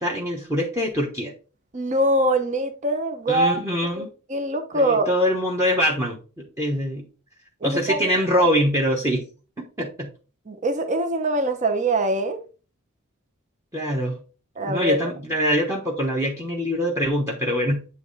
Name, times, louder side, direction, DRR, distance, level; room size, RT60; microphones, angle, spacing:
voice 1, 0.0-1.3 3.3-4.1 4.7-7.1 7.6-9.3 9.6-10.1 13.7-14.2 14.6-17.9, equal, 15° right, 1.1 m, -24 dB
voice 2, 1.7-3.6 4.0-4.1 4.3-5.1 7.6-8.1 10.5-12.4 14.6-15.0, right 1 dB, 35° right, 0.8 m, -23 dB
9.2 x 3.2 x 4.0 m
head